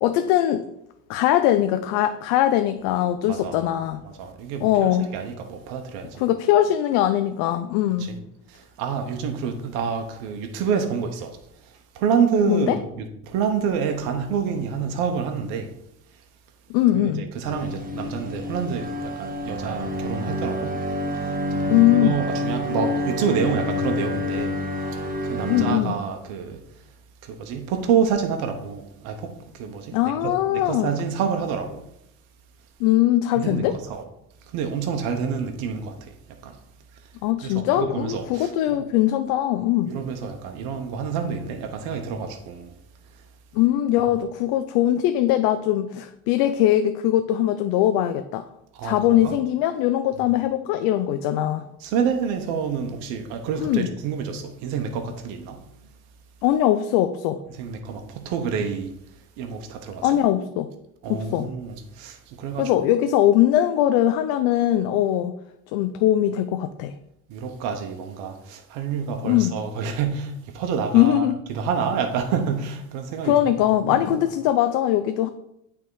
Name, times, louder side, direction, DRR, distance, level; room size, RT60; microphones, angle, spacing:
voice 1, 0.0-0.7 1.1-4.0 4.6-5.1 6.2-8.1 12.5-12.8 16.7-17.2 21.7-22.2 25.5-26.0 29.9-30.9 32.8-33.8 37.2-39.9 43.5-48.5 48.8-51.7 53.6-53.9 56.4-57.4 60.0-60.7 61.1-61.5 62.6-65.3 65.7-66.9 69.2-69.5 70.9-71.4 73.2-75.3, left 12 dB, 80° left, 0.5 m, -21 dB
voice 2, 3.3-3.7 4.0-6.2 8.0-8.2 8.5-11.4 11.6-15.7 16.1-16.2 16.9-26.8 27.2-31.8 33.4-34.0 34.5-36.1 36.4-36.6 37.0-37.1 37.4-38.8 39.8-42.7 43.1-43.2 48.7-49.4 51.8-55.6 57.5-58.9 59.4-60.1 61.0-62.7 67.3-73.5 73.8-74.0, right 6 dB, 80° right, 0.9 m, -28 dB
sound 1, 17.4-25.7, left 1 dB, 25° right, 1.4 m, -28 dB
8.6 x 3.6 x 4.7 m
supercardioid pair, 75°, 36 cm